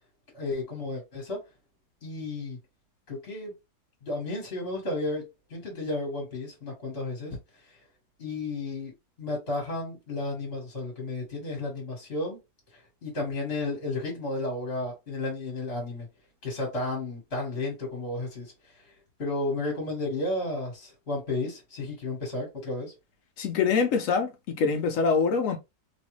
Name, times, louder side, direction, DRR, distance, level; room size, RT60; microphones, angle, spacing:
voice 1, 0.3-1.4 2.0-2.6 3.1-3.5 4.0-7.4 7.7-7.8 8.2-8.9 9.2-12.4 12.7-16.1 16.4-18.9 19.2-22.9, left 2 dB, 40° left, 1.5 m, -33 dB
voice 2, 23.4-25.6, left 5 dB, 70° left, 0.8 m, -25 dB
3.1 x 2.4 x 3.0 m
omnidirectional pair, 1.7 m